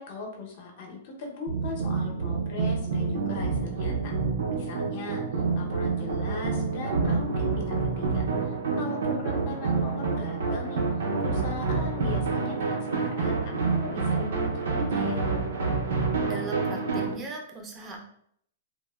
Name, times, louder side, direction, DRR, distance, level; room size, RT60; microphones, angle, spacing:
voice 1, 0.0-4.1 4.5-5.2 5.6-10.8 11.2-15.2, left 2 dB, 45° left, 1 dB, 0.6 m, -39 dB
sound 1, 1.5-17.1, right 4 dB, 85° right, 0.5 m, -28 dB
voice 2, 16.2-18.0, right 3 dB, 15° right, 1 dB, 0.4 m, -38 dB
3.0 x 2.0 x 2.2 m, 0.66 s
supercardioid pair, 170°, 0 cm